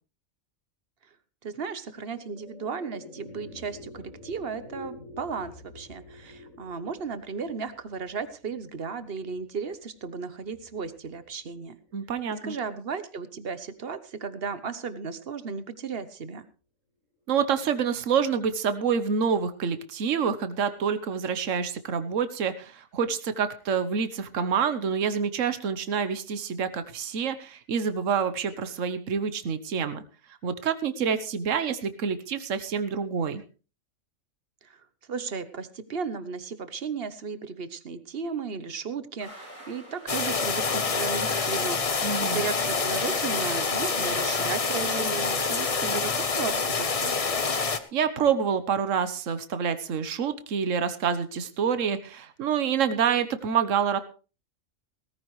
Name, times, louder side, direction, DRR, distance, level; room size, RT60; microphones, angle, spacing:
voice 1, 1.4-11.8 12.4-16.4 34.6-34.8 35.1-45.4 45.9-47.1, right 5 dB, 50° right, 13 dB, 1.1 m, -35 dB
sound 1, 1.7-12.2, left 2 dB, 65° left, 5.4 m, -49 dB
voice 2, 11.9-12.5 17.3-30.0 30.4-33.4 42.0-42.4 45.5-46.0 47.9-54.0, right 7 dB, 65° right, 11 dB, 1.4 m, -27 dB
sound 2, 39.2-44.9, equal, 10° left, 4.8 m, -46 dB
sound 3, 40.1-47.8, left 4 dB, 30° left, 0.9 m, -27 dB
17.5 x 14.5 x 3.2 m, 0.34 s
omnidirectional pair, 1.4 m